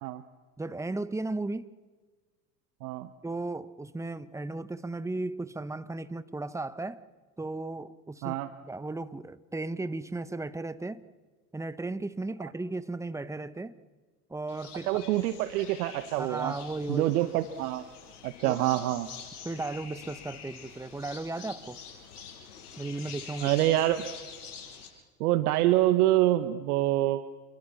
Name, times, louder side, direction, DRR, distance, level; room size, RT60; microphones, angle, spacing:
voice 1, 0.6-1.7 3.2-7.0 7.4-8.3 8.6-11.0 11.5-13.8 14.3-14.9 16.2-17.1 18.4-18.6 19.4-21.8 22.8-23.5, right 2 dB, 5° right, 0.9 m, -35 dB
sound 1, 14.5-24.9, left 7 dB, 70° left, 6.9 m, -46 dB
voice 2, 14.9-16.5 16.9-17.8 18.2-19.3 23.4-24.0 25.2-27.3, right 15 dB, 65° right, 1.2 m, -26 dB
28.5 x 23.0 x 7.1 m
hypercardioid pair, 85°, 47 cm